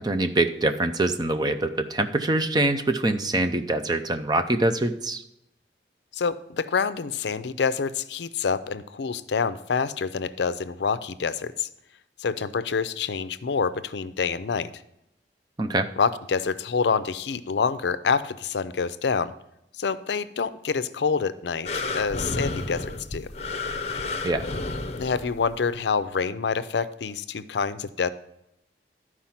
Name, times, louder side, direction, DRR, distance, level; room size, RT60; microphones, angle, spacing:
voice 1, 0.0-5.2 15.6-15.9 24.2-24.4, right 2 dB, 25° right, 7 dB, 0.5 m, -24 dB
voice 2, 6.1-11.7 12.2-14.7 16.0-19.3 19.8-23.3 25.0-28.1, left 5 dB, 75° left, 14 dB, 0.5 m, -27 dB
sound 1, 21.7-25.6 26.2-26.3, left 3 dB, 35° left, 0.7 m, -31 dB
12.0 x 4.8 x 5.8 m, 0.82 s
head